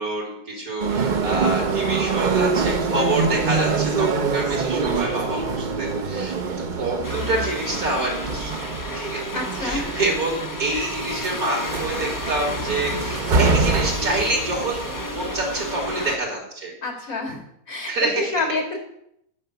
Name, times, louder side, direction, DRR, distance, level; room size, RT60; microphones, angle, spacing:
voice 1, 0.0-6.4 6.7-8.6 8.9-9.2 9.6-16.7 17.9-18.4, right 2 dB, 90° right, -1 dB, 3.2 m, -27 dB
sound 1, 0.8-16.2, right 4 dB, 45° right, 0.7 m, -25 dB
sound 2, 7.0-16.2, left 3 dB, 25° left, 0.4 m, -33 dB
voice 2, 9.3-10.0 10.7-10.9 16.0-16.1 16.8-17.4 17.7-18.8, left 3 dB, 70° left, 1 dB, 2.5 m, -28 dB
9.7 x 4.7 x 6.8 m, 0.75 s
omnidirectional pair, 1.5 m